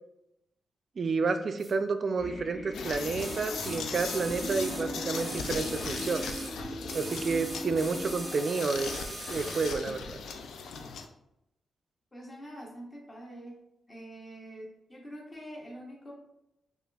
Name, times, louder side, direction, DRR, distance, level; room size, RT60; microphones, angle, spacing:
voice 1, 1.0-6.3 6.9-10.2, right 4 dB, 50° right, 8 dB, 0.3 m, -30 dB
sound 1, 1.6-1.7 3.2-6.6 6.9-9.8 10.8-10.9, right 1 dB, 20° right, 0.7 m, -42 dB
sound 2, 2.2-8.3, left 1 dB, 50° left, 1.4 m, -40 dB
sound 3, 2.7-11.1, left 5 dB, 85° left, 0.3 m, -39 dB
voice 2, 12.1-13.6 13.9-16.1, equal, 20° left, -1 dB, 0.9 m, -45 dB
5.1 x 2.4 x 2.3 m, 0.86 s
cardioid pair, 95°, 0 cm